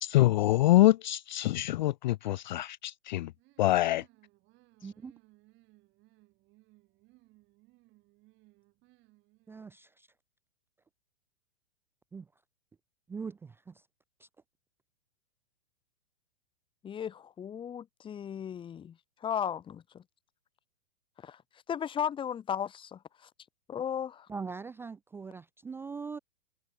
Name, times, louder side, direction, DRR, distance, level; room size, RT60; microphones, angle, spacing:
voice 1, 0.0-3.3 3.6-4.0, left 16 dB, 45° left, 0.4 m, -25 dB
sound 1, 3.4-9.8, right 21 dB, 35° right, 4.5 m, -64 dB
voice 2, 4.8-5.1 9.5-10.1 12.1-12.3 13.1-13.8 14.2-14.3 24.3-26.2, right 5 dB, 5° right, 0.5 m, -41 dB
voice 3, 16.8-19.0 19.2-20.0 21.2-21.4 21.7-23.0 23.7-24.3, left 8 dB, 15° left, 1.1 m, -35 dB
open air
figure-of-eight pair, 110°, 34 cm